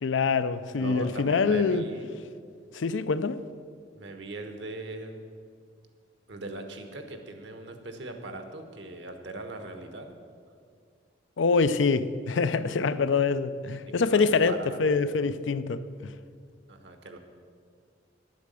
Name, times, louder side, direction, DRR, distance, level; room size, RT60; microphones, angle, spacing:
voice 1, 0.0-1.9 2.7-3.4 11.4-16.1, left 4 dB, 85° left, 0.5 m, -25 dB
voice 2, 0.8-2.1 3.9-5.2 6.3-10.1 14.0-14.8 16.7-17.2, right 2 dB, 70° right, 1.2 m, -40 dB
10.5 x 8.0 x 6.8 m
head